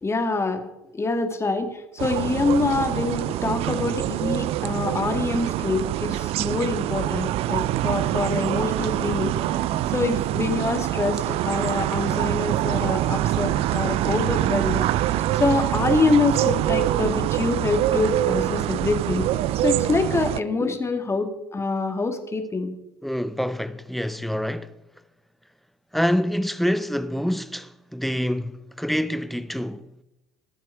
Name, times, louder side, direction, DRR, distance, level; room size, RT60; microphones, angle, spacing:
voice 1, 0.0-0.6 0.9-9.6 9.9-14.9 15.3-19.2 19.6-22.7, left 3 dB, 20° left, 1.8 m, -25 dB
sound 1, 2.0-20.4, right 13 dB, 55° right, 0.5 m, -25 dB
voice 2, 23.0-24.7 25.9-29.9, equal, ahead, 0.8 m, -26 dB
19.5 x 7.4 x 4.8 m
figure-of-eight pair, 60°, 12 cm